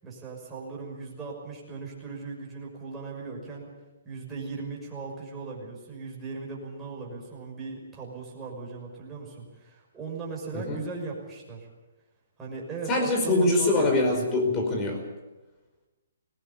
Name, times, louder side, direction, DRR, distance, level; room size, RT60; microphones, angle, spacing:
voice 1, 0.0-3.7 4.0-11.7 12.4-14.3, right 4 dB, 10° right, -4 dB, 6.1 m, -38 dB
voice 2, 12.9-15.0, left 2 dB, 20° left, 4 dB, 5.0 m, -24 dB
19.5 x 18.5 x 8.5 m, 1.1 s
hypercardioid pair, 155°, 0 cm